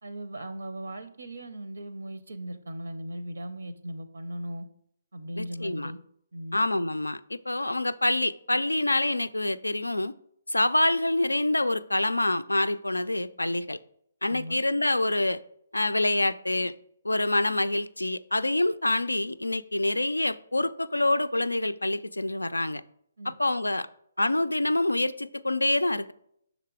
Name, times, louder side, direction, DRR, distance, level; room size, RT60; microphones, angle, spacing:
voice 1, 0.0-4.7 5.1-6.0 6.3-6.6 14.3-14.6 23.2-23.3, right 1 dB, 70° right, 0.6 m, -38 dB
voice 2, 5.4-5.9 6.5-10.1 10.5-13.8 14.2-15.4 15.7-16.7 17.0-22.8 23.4-23.9 24.2-26.1, left 2 dB, 85° left, 0.3 m, -26 dB
5.9 x 3.9 x 4.7 m
figure-of-eight pair, 135°, 0 cm